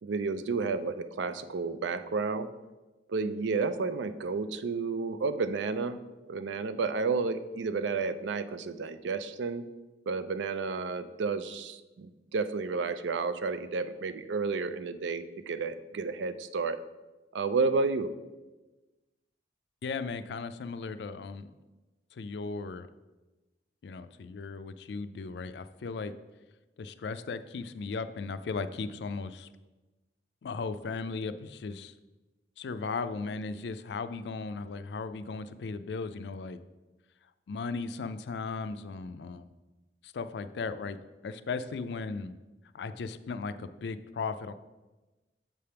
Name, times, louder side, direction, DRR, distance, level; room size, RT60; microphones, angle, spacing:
voice 1, 0.0-2.5 3.1-6.0 6.3-9.6 10.1-16.8 17.3-18.1, right 4 dB, 85° right, 11 dB, 0.4 m, -31 dB
voice 2, 19.8-21.5 22.1-22.9 23.8-26.1 26.8-29.5 30.4-31.9 32.6-36.6 37.5-39.5 40.0-41.0 41.2-42.3 42.7-44.5, left 4 dB, 70° left, 12 dB, 0.4 m, -36 dB
7.5 x 3.4 x 5.7 m, 1.1 s
head